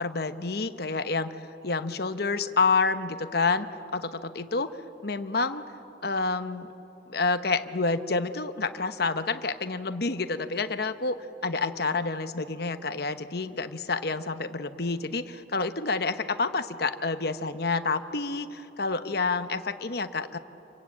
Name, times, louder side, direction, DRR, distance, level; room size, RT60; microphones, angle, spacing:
voice 1, 0.0-1.3 1.6-3.7 3.9-4.7 5.0-5.6 6.0-6.7 7.1-11.2 11.4-20.4, left 4 dB, 55° left, 10 dB, 1.0 m, -28 dB
28.0 x 23.0 x 8.7 m, 3.0 s
head